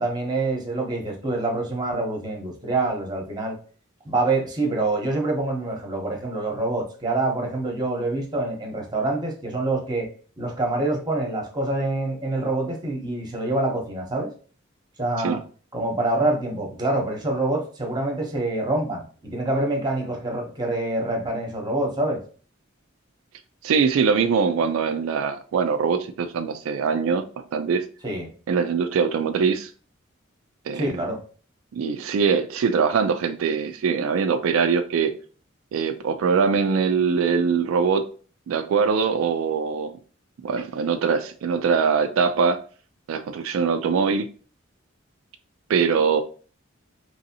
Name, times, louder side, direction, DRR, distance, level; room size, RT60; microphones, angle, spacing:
voice 1, 0.0-3.6 4.0-10.1 10.4-14.3 15.0-15.4 15.7-22.2 28.0-28.3 30.7-31.2, right 2 dB, 20° right, 0.8 m, -26 dB
voice 2, 23.6-27.2 27.5-27.8 28.5-29.7 30.7-30.8 31.7-35.1 35.7-38.0 38.5-40.0 40.4-42.6 43.1-44.3 45.7-46.2, right 5 dB, 80° right, 0.3 m, -22 dB
3.0 x 2.6 x 2.7 m
head